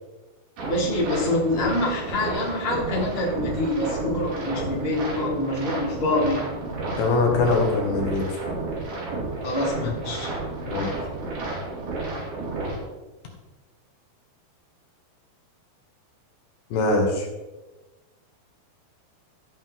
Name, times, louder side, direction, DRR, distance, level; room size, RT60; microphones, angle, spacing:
voice 1, 0.6-6.5 9.4-10.3, left 1 dB, 20° left, -4 dB, 2.3 m, -26 dB
sound 1, 0.6-12.8, right 2 dB, 55° right, 4.0 m, -31 dB
voice 2, 7.0-8.3 10.7-11.0 16.7-17.3, left 3 dB, 75° left, 1 dB, 3.5 m, -22 dB
15.5 x 7.2 x 3.7 m, 1.1 s
omnidirectional pair, 4.5 m